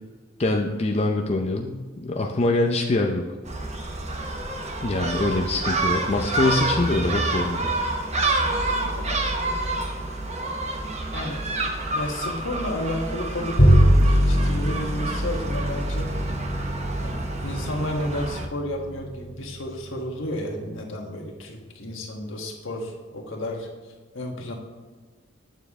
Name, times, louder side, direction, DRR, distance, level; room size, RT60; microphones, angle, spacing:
voice 1, 0.4-3.2 4.8-7.7, left 2 dB, 30° left, 1 dB, 0.6 m, -24 dB
Gull seagull, 3.5-18.5, right 2 dB, 35° right, 0.9 m, -28 dB
voice 2, 8.7-9.2 11.1-11.5 11.9-16.1 17.0-23.7 24.1-24.5, left 1 dB, 75° left, 1 dB, 1.5 m, -32 dB
Bowed string instrument, 13.6-20.0, equal, 50° left, 2.1 m, -23 dB
9.1 x 7.1 x 3.6 m, 1.4 s
head